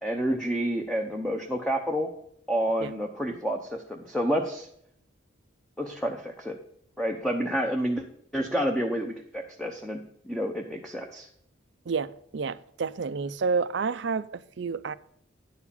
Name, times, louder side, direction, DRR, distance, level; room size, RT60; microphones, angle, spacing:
voice 1, 0.0-2.1 2.5-4.7 5.8-6.6 7.0-8.0 8.3-11.3, equal, 5° left, 0.7 m, -29 dB
voice 2, 11.9-14.9, right 5 dB, 60° right, 0.4 m, -30 dB
10.0 x 4.8 x 6.9 m
head